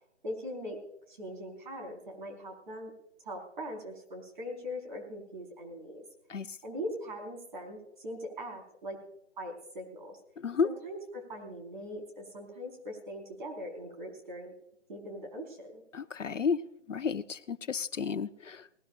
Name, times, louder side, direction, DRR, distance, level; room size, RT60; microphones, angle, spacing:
voice 1, 0.2-0.8 1.1-2.9 3.2-6.0 6.6-9.0 9.4-10.2 10.6-14.5 14.9-15.8, equal, 40° right, 1 dB, 4.5 m, -41 dB
voice 2, 10.4-10.7 15.9-18.7, left 5 dB, 85° left, 13 dB, 0.9 m, -32 dB
19.0 x 19.0 x 2.5 m, 0.75 s
figure-of-eight pair, 160°, 36 cm